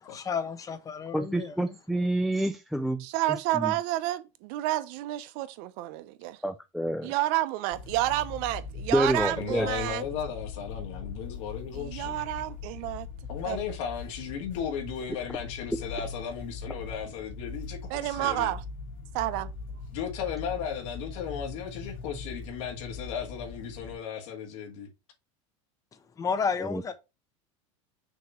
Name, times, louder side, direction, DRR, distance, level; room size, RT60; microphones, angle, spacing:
voice 1, 0.0-1.8 25.9-26.9, left 6 dB, 20° left, 0.9 m, -32 dB
voice 2, 1.1-3.7 6.4-7.1 8.9-9.7 26.7-26.8, right 1 dB, ahead, 0.3 m, -28 dB
voice 3, 3.0-6.4 7.0-10.0 11.7-13.1 13.4-13.7 17.9-18.6 19.1-19.5, right 15 dB, 55° right, 0.8 m, -30 dB
sound 1, 7.7-24.0, left 5 dB, 90° left, 2.8 m, -41 dB
voice 4, 9.4-12.2 13.3-18.5 19.9-24.9, left 7 dB, 70° left, 1.9 m, -35 dB
6.3 x 3.0 x 5.6 m
supercardioid pair, 135°, 16 cm